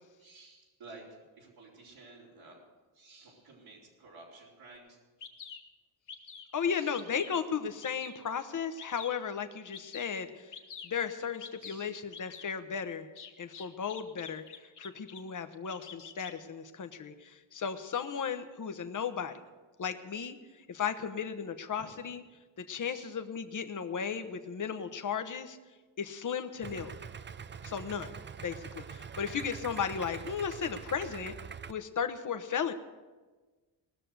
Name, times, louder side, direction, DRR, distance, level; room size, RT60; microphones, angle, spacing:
voice 1, 0.2-2.6 2.9-5.0 6.7-7.0 11.6-12.0 13.6-13.7 22.8-23.1, right 3 dB, 80° right, -5 dB, 4.3 m, -53 dB
Bird vocalization bird call bird song, 4.7-4.8 5.2-5.6 6.1-6.5 6.9-7.3 7.8-8.2 8.8-9.2 9.7-10.1 10.5-10.9 11.4-11.8 12.1-12.5 13.2-15.2 15.5-16.3, left 6 dB, 60° left, 1.7 m, -47 dB
voice 2, 6.5-10.5 10.8-13.1 13.4-14.4 14.8-19.4 19.8-20.4 20.7-22.2 22.6-25.6 26.0-26.9 27.6-28.1 28.4-31.3 31.7-32.7, left 7 dB, 40° left, 8 dB, 1.1 m, -35 dB
Idling, 26.6-31.7, right 6 dB, 25° right, 0.5 m, -44 dB
19.5 x 6.6 x 7.9 m, 1.3 s
cardioid pair, 85°, 46 cm